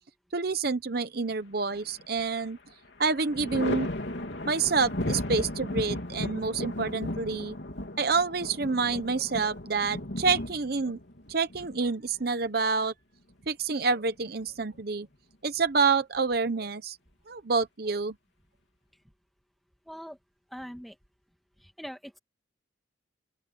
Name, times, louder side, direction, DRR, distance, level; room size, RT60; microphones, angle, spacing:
voice 1, 0.3-2.6 3.0-3.9 4.5-7.6 8.0-11.0 11.3-12.9 13.5-15.1 15.4-17.0 17.3-18.1, right 4 dB, 55° right, 0.8 m, -28 dB
Thunder, 1.7-2.5 2.8-12.4 13.9-14.8, left 1 dB, 65° left, 3.3 m, -35 dB
voice 2, 19.9-20.2 20.5-21.0 21.6-22.2, equal, ahead, 2.1 m, -42 dB
open air
head